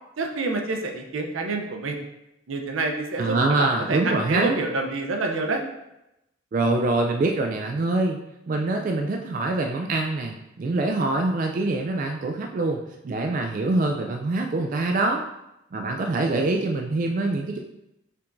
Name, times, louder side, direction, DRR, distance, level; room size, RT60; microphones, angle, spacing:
voice 1, 0.2-2.0 2.5-5.6, right 3 dB, 85° right, 3 dB, 0.6 m, -27 dB
voice 2, 3.2-4.6 6.5-8.2 8.5-15.2 15.7-17.6, right 2 dB, 45° right, 3 dB, 0.3 m, -24 dB
5.7 x 3.4 x 2.6 m, 0.88 s
head